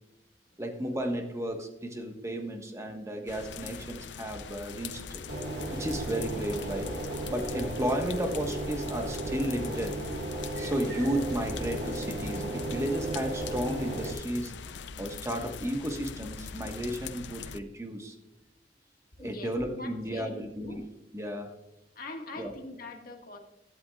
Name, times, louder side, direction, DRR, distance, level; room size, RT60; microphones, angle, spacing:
voice 1, 0.6-5.2 5.7-6.9 7.3-10.0 10.6-14.5 15.0-18.1 19.2-20.8 21.1-21.5 22.4-22.5, equal, 15° right, 3 dB, 1.4 m, -33 dB
sound 1, 3.3-17.6, left 5 dB, 90° left, 0.6 m, -42 dB
sound 2, 5.3-14.1, right 1 dB, 75° right, 1.7 m, -35 dB
voice 2, 19.2-20.8 21.9-23.4, left 2 dB, 55° left, 2 dB, 1.7 m, -43 dB
16.0 x 11.5 x 2.4 m, 0.99 s
head